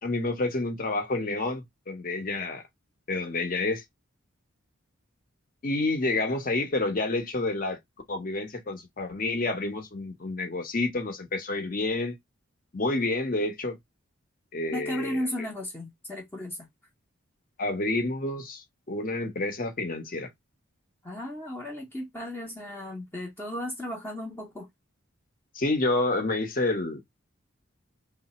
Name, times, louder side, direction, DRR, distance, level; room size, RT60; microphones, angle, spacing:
voice 1, 0.0-2.6 3.1-3.8 5.6-7.8 8.1-12.2 12.7-13.8 14.5-15.2 17.6-20.3 25.5-27.0, left 2 dB, 40° left, 0.8 m, -29 dB
voice 2, 14.7-16.6 21.0-24.7, left 1 dB, 10° left, 0.6 m, -35 dB
3.2 x 2.0 x 4.0 m
head